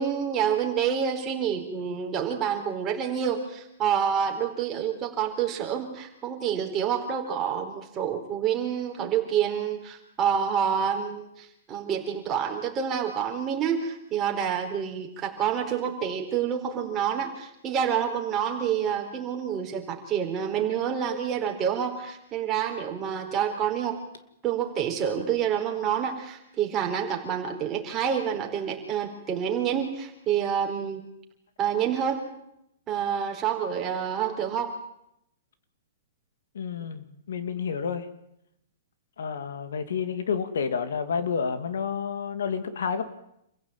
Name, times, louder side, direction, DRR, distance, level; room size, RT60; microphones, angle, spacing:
voice 1, 0.0-24.0 24.4-31.0 31.6-32.3 32.9-34.8, right 8 dB, 20° right, 2 dB, 4.6 m, -28 dB
voice 2, 36.5-38.1 39.2-43.1, left 6 dB, 80° left, 10 dB, 2.6 m, -30 dB
27.5 x 16.0 x 9.1 m, 0.78 s
hypercardioid pair, 155°, 0 cm